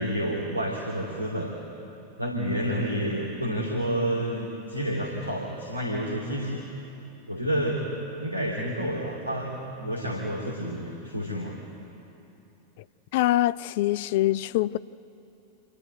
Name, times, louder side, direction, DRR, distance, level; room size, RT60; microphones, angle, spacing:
voice 1, 0.0-1.5 2.2-6.6 7.3-7.8 8.2-11.5, equal, 85° right, 2.6 m, -29 dB
voice 2, 13.1-14.8, left 15 dB, 50° left, 0.4 m, -24 dB
27.5 x 12.5 x 9.4 m
figure-of-eight pair, 90°, 0 cm